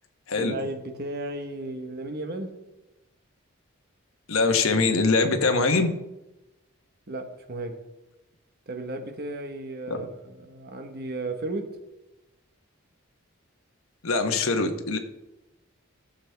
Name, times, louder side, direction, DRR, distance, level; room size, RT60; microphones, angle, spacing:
voice 1, 0.4-2.6 7.1-7.8 8.7-11.8, right 2 dB, 45° right, 5 dB, 1.1 m, -34 dB
voice 2, 4.3-5.9 9.9-10.0 14.0-15.0, left 3 dB, 70° left, 6 dB, 1.1 m, -23 dB
15.5 x 7.0 x 3.4 m, 0.98 s
head